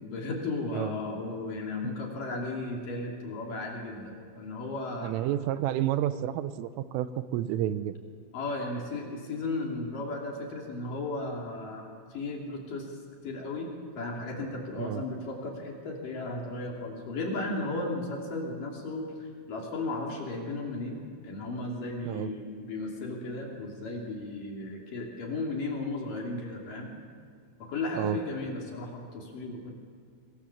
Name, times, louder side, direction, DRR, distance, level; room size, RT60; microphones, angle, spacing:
voice 1, 0.0-5.1 8.3-12.9 13.2-13.7 13.9-26.9 27.6-29.7, left 2 dB, 50° left, 0 dB, 4.1 m, -35 dB
voice 2, 5.0-7.1 7.3-7.9 14.8-15.0 22.1-22.3 28.0-28.2, right 12 dB, 85° right, 12 dB, 3.4 m, -30 dB
25.5 x 22.0 x 7.3 m, 2.1 s
omnidirectional pair, 5.7 m